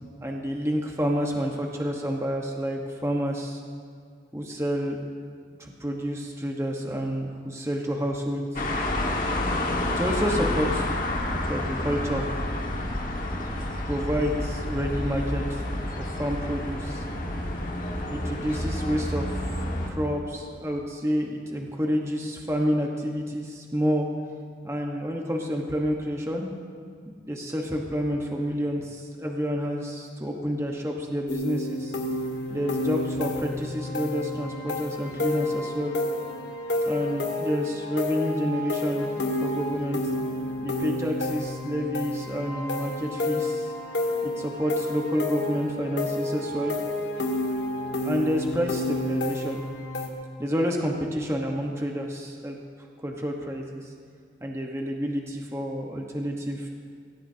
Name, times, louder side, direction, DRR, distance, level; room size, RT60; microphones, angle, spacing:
voice 1, 0.2-3.6 4.3-5.0 5.6-8.6 9.8-10.9 11.1-12.3 13.4-15.6 16.0-17.0 18.1-19.4 19.9-24.1 24.6-26.5 27.1-32.0 32.5-36.0 36.8-40.0 40.6-43.7 44.2-46.8 48.0-49.6 50.4-52.6 53.0-53.8 54.4-56.7, equal, 15° right, 0 dB, 1.2 m, -29 dB
sound 1, 8.5-19.9, left 1 dB, 50° left, 1.6 m, -29 dB
sound 2, 31.3-50.1, left 2 dB, 85° left, 2.0 m, -30 dB
22.0 x 17.0 x 2.8 m, 2.1 s
head